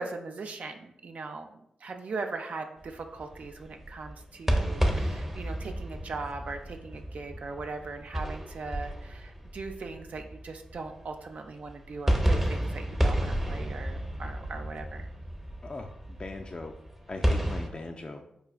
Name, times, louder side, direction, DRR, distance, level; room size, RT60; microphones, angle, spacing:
voice 1, 0.0-1.5 1.8-15.1, right 3 dB, 65° right, 5 dB, 0.4 m, -39 dB
sound 1, 2.8-11.2 11.6-17.7, equal, 5° right, 0.6 m, -31 dB
voice 2, 15.6-15.9 16.2-16.7 17.1-18.2, left 3 dB, 35° left, 2 dB, 0.3 m, -39 dB
4.7 x 2.3 x 2.3 m, 0.77 s
supercardioid pair, 45°, 3 cm